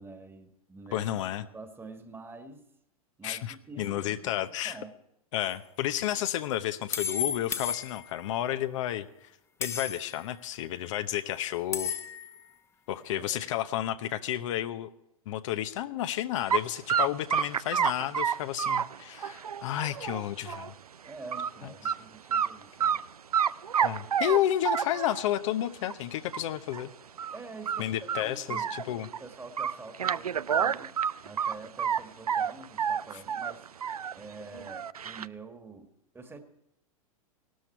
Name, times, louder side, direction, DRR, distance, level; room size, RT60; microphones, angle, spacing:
voice 1, 0.0-1.2 1.5-2.7 3.2-5.0 13.1-13.5 21.0-23.0 27.3-31.0 31.2-33.7 34.1-36.4, right 3 dB, 10° right, 7 dB, 1.7 m, -47 dB
voice 2, 0.9-1.5 3.2-4.8 5.3-9.3 9.6-11.9 12.9-14.9 15.3-20.7 21.8-21.9 23.8-26.9 27.8-29.1, left 12 dB, 60° left, 9 dB, 0.9 m, -31 dB
sound 1, 5.4-5.6 6.9-8.4 9.6-10.2 11.7-12.4, left 8 dB, 15° left, 1.0 m, -33 dB
sound 2, 16.5-16.6 16.9-20.7 21.1-21.5 21.8-22.0 22.3-23.0 23.3-25.3 25.9-26.0 26.3-26.4 26.7-26.8 27.2-27.4 27.7-29.2 29.6-32.0 32.3-34.1 34.5-35.3, right 8 dB, 90° right, 0.4 m, -29 dB
17.5 x 13.0 x 4.5 m, 0.80 s
hypercardioid pair, 100°, 19 cm